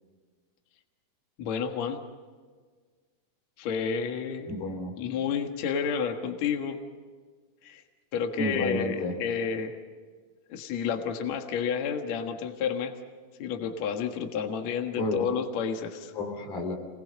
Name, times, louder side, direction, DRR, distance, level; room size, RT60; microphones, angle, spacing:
voice 1, 1.4-2.0 3.6-4.5 5.0-6.8 7.6-7.8 8.1-9.8 10.5-13.0 13.4-16.1, left 7 dB, 55° left, 4 dB, 2.5 m, -30 dB
voice 2, 4.5-4.9 8.4-9.1 15.0-15.3 16.1-16.7, left 1 dB, 85° left, 3 dB, 5.2 m, -31 dB
28.0 x 21.0 x 5.4 m, 1.5 s
omnidirectional pair, 4.1 m